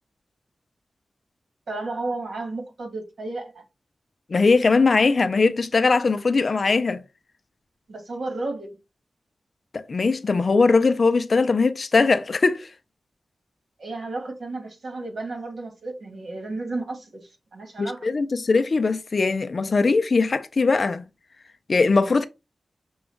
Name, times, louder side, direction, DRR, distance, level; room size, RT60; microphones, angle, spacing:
voice 1, 1.7-3.6 7.9-8.8 13.8-17.2 17.5-18.0, right 2 dB, 80° right, 1.6 m, -32 dB
voice 2, 4.3-7.0 9.7-12.7 17.8-21.0 21.7-22.2, left 4 dB, 55° left, 0.5 m, -20 dB
6.1 x 2.3 x 3.4 m
wide cardioid pair, 90°, 0 cm